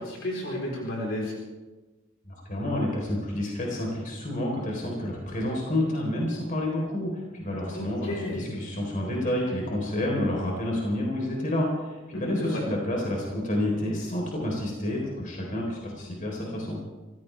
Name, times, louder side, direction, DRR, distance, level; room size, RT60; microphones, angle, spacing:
voice 1, 0.0-1.3 7.7-8.7 12.1-12.6, left 1 dB, 65° left, -2 dB, 4.0 m, -33 dB
voice 2, 2.3-16.8, left 1 dB, 40° left, -1 dB, 3.9 m, -29 dB
27.0 x 15.5 x 3.4 m, 1.2 s
head